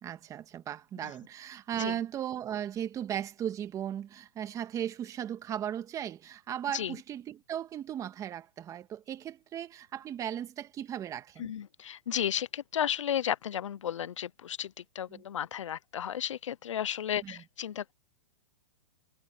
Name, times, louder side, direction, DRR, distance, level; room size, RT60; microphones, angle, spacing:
voice 1, 0.0-11.5 15.1-15.2 17.2-17.4, right 10 dB, 20° right, 1.8 m, -37 dB
voice 2, 11.4-17.9, left 10 dB, 85° left, 0.6 m, -33 dB
hypercardioid pair, 140°, 16 cm